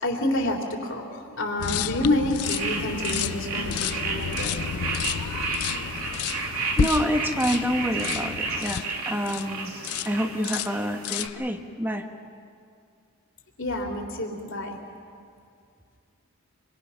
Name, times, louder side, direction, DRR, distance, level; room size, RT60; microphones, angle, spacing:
voice 1, 0.0-4.6 13.6-14.8, left 1 dB, 55° left, 0 dB, 3.3 m, -28 dB
sound 1, 1.6-9.5 9.8-10.2 10.4-11.4, left 8 dB, 85° left, 0.5 m, -31 dB
sound 2, 2.4-11.3, right 3 dB, 75° right, 3.0 m, -32 dB
voice 2, 6.8-9.7 10.0-12.0, equal, 10° right, 5 dB, 1.3 m, -27 dB
28.0 x 23.5 x 5.8 m, 2.3 s
head